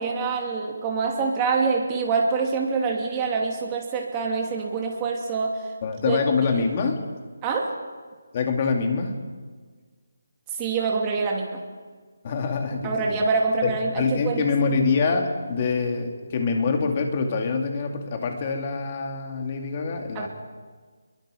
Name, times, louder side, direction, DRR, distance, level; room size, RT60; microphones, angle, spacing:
voice 1, 0.0-5.6 6.1-6.2 7.4-7.7 10.6-11.6 12.8-14.5 20.1-20.3, right 4 dB, 15° right, 0 dB, 2.8 m, -25 dB
voice 2, 5.8-7.0 8.3-9.2 12.2-13.2 13.6-20.3, left 4 dB, 30° left, 3 dB, 2.6 m, -25 dB
29.0 x 22.5 x 5.2 m, 1.5 s
hypercardioid pair, 170°, 0 cm